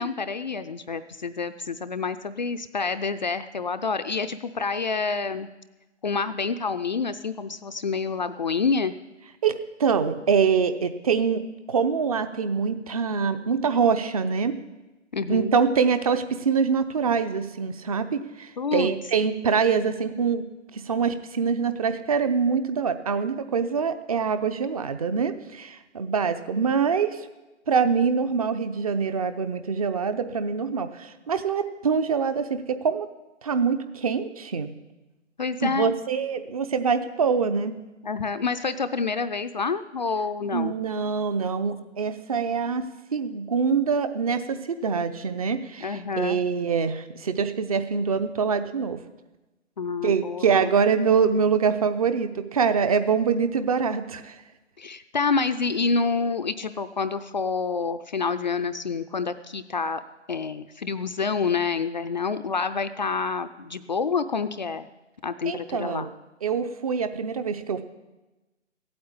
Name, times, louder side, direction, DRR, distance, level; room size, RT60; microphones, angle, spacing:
voice 1, 0.0-5.5 6.0-9.0 15.1-15.6 18.6-18.9 35.4-36.0 38.0-40.7 45.8-46.4 49.8-50.7 54.8-60.0 60.3-64.9 65.2-66.1, left 4 dB, 40° left, 10 dB, 0.5 m, -28 dB
voice 2, 9.4-11.4 11.7-14.5 15.3-20.4 20.7-27.3 27.7-33.1 33.4-34.7 35.6-37.7 40.5-49.0 50.0-54.4 65.4-66.1 66.4-67.8, right 6 dB, 30° right, 10 dB, 0.8 m, -24 dB
15.5 x 8.7 x 8.7 m, 1.1 s
figure-of-eight pair, 145°, 37 cm